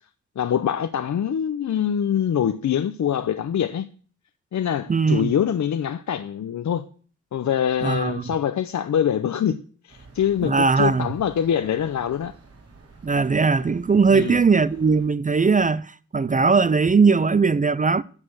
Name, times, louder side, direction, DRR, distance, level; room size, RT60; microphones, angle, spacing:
voice 1, 0.4-3.9 4.5-6.8 7.3-9.6 9.8-12.3 14.1-14.4, left 9 dB, 70° left, 0.7 m, -24 dB
voice 2, 4.9-5.3 7.8-8.2 10.4-11.1 13.0-18.0, right 4 dB, 25° right, 0.4 m, -19 dB
sound 1, 9.9-15.1, right 3 dB, 50° right, 3.5 m, -49 dB
13.5 x 6.7 x 6.4 m
wide cardioid pair, 115°, 30 cm